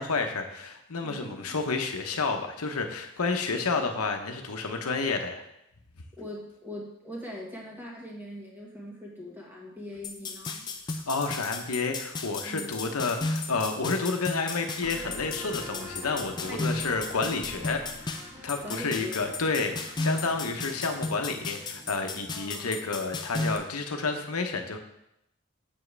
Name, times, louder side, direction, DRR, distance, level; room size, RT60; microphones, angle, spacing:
voice 1, 0.0-5.4 11.1-18.1 18.4-24.8, left 4 dB, 90° left, 5 dB, 0.9 m, -30 dB
voice 2, 1.0-1.6 3.8-4.0 6.2-10.7 12.4-12.7 16.5-16.8 18.6-19.3 19.7-19.8 22.3-22.8, left 1 dB, 10° right, -3 dB, 1.5 m, -41 dB
sound 1, 10.0-23.6, left 3 dB, 20° left, 0.4 m, -35 dB
sound 2, 10.2-14.9 15.3-16.3, left 6 dB, 60° left, 1.2 m, -46 dB
sound 3, 14.8-22.2, left 1 dB, 25° right, 1.4 m, -45 dB
7.3 x 7.2 x 3.3 m, 0.82 s
head